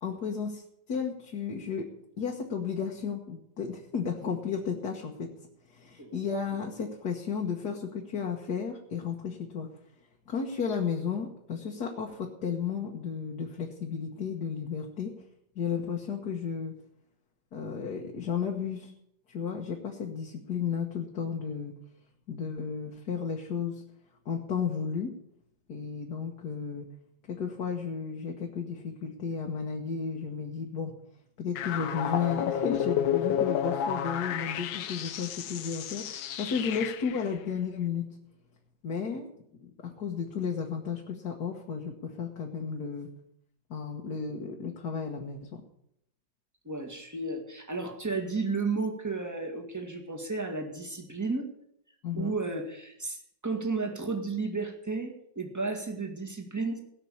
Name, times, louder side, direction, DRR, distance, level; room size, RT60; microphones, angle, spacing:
voice 1, 0.0-1.9 2.2-5.3 5.7-9.7 10.3-15.1 15.6-16.7 17.5-18.9 19.3-21.7 22.3-23.8 24.3-25.1 25.7-26.9 27.3-30.9 31.4-38.0 38.8-39.3 39.6-43.1 43.7-45.6 52.0-52.3, left 6 dB, 55° left, 0 dB, 1.8 m, -33 dB
sound 1, 31.6-37.3, left 9 dB, 80° left, 1.6 m, -31 dB
voice 2, 46.7-51.5 52.1-56.8, right 3 dB, 10° right, 3 dB, 1.7 m, -33 dB
18.0 x 6.0 x 8.5 m, 0.75 s
omnidirectional pair, 2.1 m